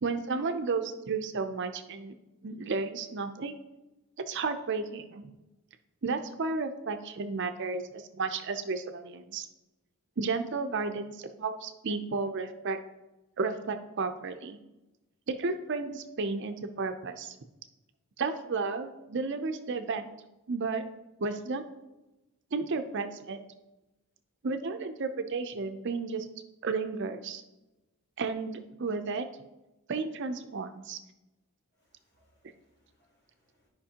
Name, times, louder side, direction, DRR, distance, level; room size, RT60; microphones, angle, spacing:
voice 1, 0.0-2.1 2.4-3.6 4.3-5.3 6.0-9.5 10.2-12.8 13.4-14.6 15.3-17.4 18.2-20.1 20.5-20.8 21.2-21.6 22.5-23.4 24.4-26.3 26.6-27.4 28.2-29.3 29.9-31.0, right 4 dB, 55° right, 8 dB, 0.5 m, -33 dB
voice 2, 31.8-33.7, equal, 50° left, -5 dB, 3.0 m, -71 dB
12.5 x 5.1 x 2.8 m, 1.0 s
head